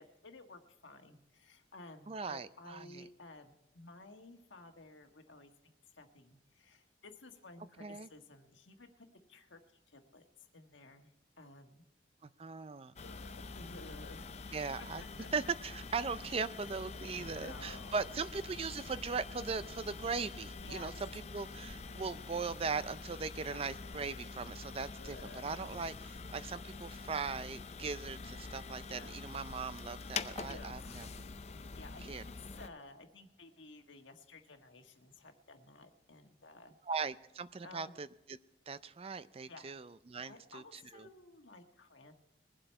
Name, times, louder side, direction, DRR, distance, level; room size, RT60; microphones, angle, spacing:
voice 1, 0.0-5.5 5.9-9.6 9.9-11.8 13.0-14.4 14.8-15.3 16.1-16.3 16.9-17.1 17.3-18.3 20.6-20.9 23.4-23.7 25.0-26.2 28.9-29.2 30.4-31.1 31.7-36.7 37.6-37.9 39.5-39.7 40.2-42.1, left 2 dB, 80° left, 5 dB, 1.5 m, -54 dB
voice 2, 2.1-3.1 7.8-8.1 12.2-12.9 14.5-15.0 15.3-25.9 26.3-31.2 32.1-32.2 36.9-38.4 38.7-41.1, right 5 dB, 30° right, 14 dB, 0.4 m, -39 dB
sound 1, 13.0-32.7, left 4 dB, 35° left, 0.5 m, -46 dB
22.0 x 7.8 x 4.5 m, 0.95 s
head